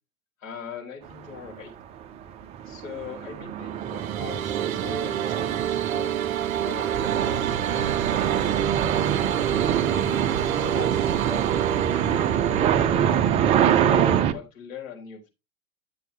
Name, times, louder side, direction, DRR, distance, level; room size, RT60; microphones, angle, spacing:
voice 1, 0.4-1.7 2.6-6.1 6.5-8.8 9.9-13.1 13.7-15.3, left 6 dB, 65° left, 0 dB, 4.4 m, -41 dB
sound 1, 1.3-1.5 2.0-14.3, right 9 dB, 15° right, 0.4 m, -25 dB
sound 2, 3.7-13.9, right 10 dB, 70° right, 0.5 m, -29 dB
sound 3, 6.9-14.2, right 7 dB, 35° right, 1.7 m, -37 dB
10.5 x 7.6 x 3.3 m, 0.26 s
figure-of-eight pair, 95°, 43 cm